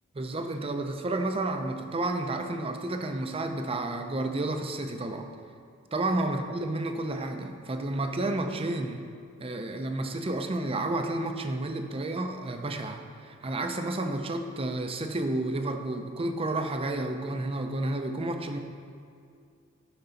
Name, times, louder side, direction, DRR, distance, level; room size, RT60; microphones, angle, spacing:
voice 1, 0.2-5.3 5.9-9.0 9.4-18.6, right 2 dB, 30° right, 6 dB, 0.6 m, -31 dB
11.5 x 4.0 x 5.6 m, 2.4 s
head